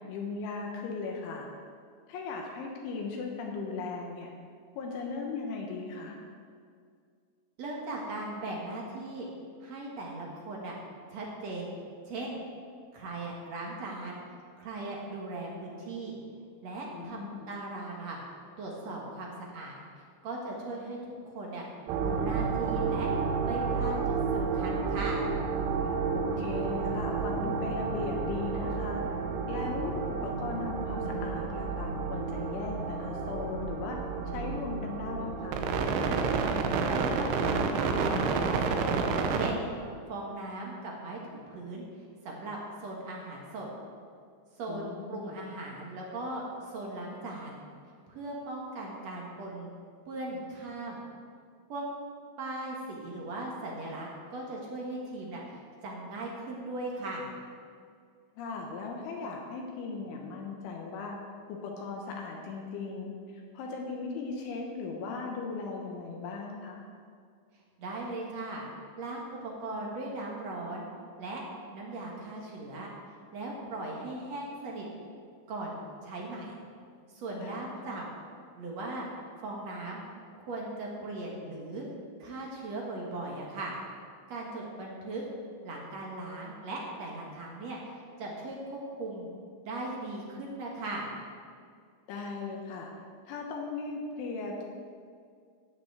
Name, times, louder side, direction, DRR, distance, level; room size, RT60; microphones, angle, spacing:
voice 1, 0.1-1.5 2.1-4.3 4.8-6.2 16.9-17.5 26.1-29.1 29.5-34.0 34.3-35.6 44.7-45.4 58.4-61.2 61.5-66.8 77.4-77.9 92.1-92.9 93.3-94.7, left 4 dB, 80° left, 0 dB, 3.5 m, -38 dB
voice 2, 7.6-9.3 9.6-10.7 11.1-11.7 12.1-12.4 12.9-14.2 14.6-16.1 16.6-18.2 18.6-19.8 20.2-21.7 22.0-23.1 23.4-25.2 36.8-37.5 37.8-39.0 39.3-39.7 40.1-41.9 42.2-43.7 44.6-47.6 48.1-49.7 50.1-51.0 51.7-51.8 52.4-55.4 55.8-57.3 67.8-68.6 69.0-70.9 71.2-71.4 71.7-72.9 73.3-74.9 75.5-76.6 77.1-78.1 78.6-79.1 79.4-80.0 80.4-81.9 82.2-83.7 84.3-85.2 85.6-89.3 89.6-91.1, right 2 dB, 55° right, -2 dB, 1.9 m, -38 dB
sound 1, 21.9-40.0, right 5 dB, 85° right, 3.4 m, -30 dB
16.5 x 6.1 x 7.8 m, 2.2 s
omnidirectional pair, 5.5 m